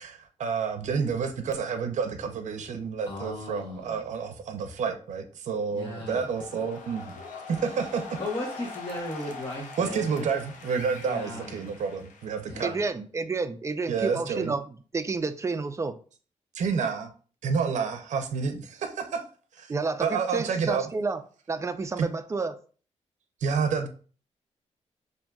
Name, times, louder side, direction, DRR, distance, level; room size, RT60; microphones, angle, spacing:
voice 1, 0.0-7.2 7.5-8.2 9.8-12.7 13.9-14.5 16.5-17.1 17.4-19.2 19.5-19.7 20.0-20.9 22.0-22.1 23.4-23.9, right 5 dB, 75° right, 7 dB, 0.6 m, -29 dB
voice 2, 3.0-4.0 5.7-6.2 8.2-10.3 11.1-11.6 12.4-12.9, left 2 dB, 30° left, -4 dB, 1.0 m, -36 dB
sound 1, 5.9-12.8, left 3 dB, 85° left, 0.6 m, -43 dB
voice 3, 12.6-14.6 14.9-15.9 19.7-21.2 21.5-22.6, right 4 dB, 25° right, 9 dB, 0.4 m, -30 dB
5.5 x 2.6 x 2.3 m, 0.40 s
cardioid pair, 100°, 13 cm